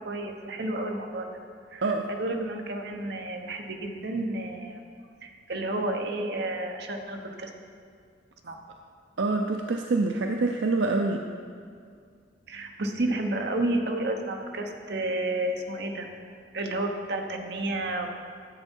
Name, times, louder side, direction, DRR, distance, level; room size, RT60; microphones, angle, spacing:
voice 1, 0.0-1.3 1.7-4.8 5.2-7.5 8.4-8.6 12.5-16.1 16.5-18.1, right 1 dB, 65° right, 3 dB, 0.9 m, -31 dB
voice 2, 9.2-11.2, right 3 dB, 80° right, 3 dB, 0.5 m, -26 dB
10.0 x 8.0 x 4.5 m, 2.2 s
head